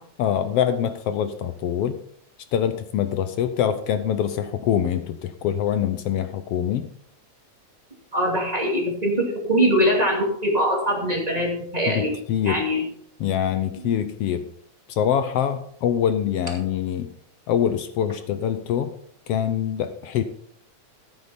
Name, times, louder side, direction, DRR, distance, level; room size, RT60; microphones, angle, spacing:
voice 1, 0.2-2.0 2.5-6.9 11.9-12.6 13.2-14.4 14.9-17.1 17.5-18.9 19.3-20.2, left 9 dB, 75° left, 10 dB, 1.4 m, -24 dB
voice 2, 8.1-12.1 12.4-12.8, equal, 15° right, -1 dB, 2.2 m, -22 dB
13.5 x 8.7 x 4.3 m, 0.68 s
omnidirectional pair, 3.3 m